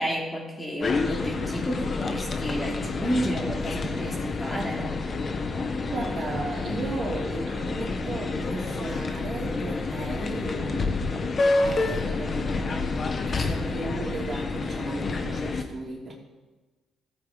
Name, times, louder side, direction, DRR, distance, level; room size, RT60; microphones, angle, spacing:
voice 1, 0.0-5.0, equal, 15° left, -2 dB, 2.8 m, -31 dB
sound 1, 0.8-15.6, left 3 dB, 45° left, 1.1 m, -29 dB
voice 2, 5.9-13.0 13.3-16.2, right 3 dB, 45° right, -2 dB, 2.9 m, -36 dB
15.5 x 8.5 x 3.9 m, 1.2 s
cardioid pair, 90°, 0 cm